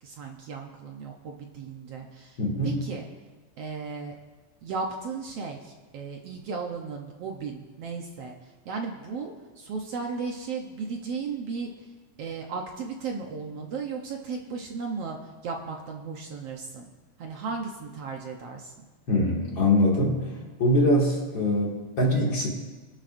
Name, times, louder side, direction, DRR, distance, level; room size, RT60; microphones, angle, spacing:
voice 1, 0.0-3.0 3.6-4.1 4.6-11.9 12.2-15.2 15.4-16.9 17.2-18.7, right 5 dB, 70° right, 1 dB, 1.5 m, -35 dB
voice 2, 2.4-2.8 19.1-20.3 20.6-22.5, left 1 dB, 40° left, -3 dB, 2.6 m, -23 dB
23.0 x 12.0 x 2.6 m, 1.3 s
omnidirectional pair, 4.0 m